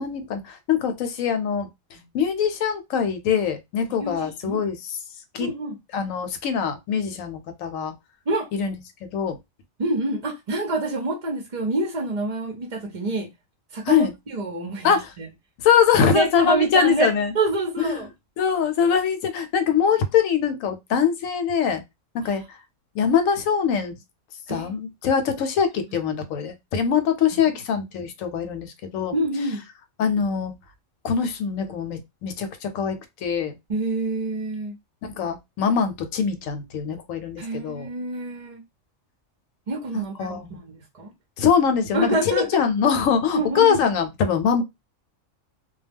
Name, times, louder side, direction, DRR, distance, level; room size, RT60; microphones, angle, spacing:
voice 1, 0.0-1.7 2.1-5.0 5.3-5.5 5.9-7.9 8.5-8.7 9.1-9.4 13.9-14.1 14.8-15.1 15.6-17.3 17.8-18.0 18.4-21.8 22.1-22.4 22.9-23.9 24.5-29.1 30.0-30.5 31.0-33.5 35.0-37.9 39.9-40.6 41.4-44.6, left 7 dB, 80° left, 1.0 m, -23 dB
voice 2, 4.0-4.6 5.4-5.8 8.3-8.5 9.8-13.3 13.7-15.3 16.1-18.1 24.5-24.7 27.3-27.6 29.1-29.6 33.7-34.8 37.4-38.6 39.7-41.1 41.9-42.6 43.3-43.8, right 2 dB, 45° right, 0.5 m, -27 dB
2.2 x 2.2 x 3.3 m
omnidirectional pair, 1.4 m